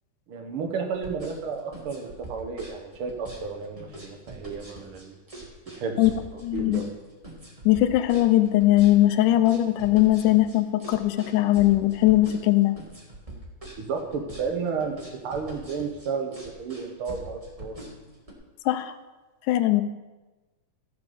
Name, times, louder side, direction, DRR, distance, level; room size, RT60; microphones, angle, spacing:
voice 1, 0.3-5.2 5.7-6.9 13.8-15.0 15.2-17.8, right 5 dB, 55° right, 3 dB, 1.9 m, -32 dB
sound 1, 0.9-18.3, right 1 dB, 15° right, 1.2 m, -43 dB
voice 2, 6.4-6.8 7.7-12.8 18.7-18.9 19.5-19.8, left 15 dB, 85° left, 10 dB, 2.2 m, -20 dB
14.0 x 8.2 x 5.2 m, 1.2 s
omnidirectional pair, 3.5 m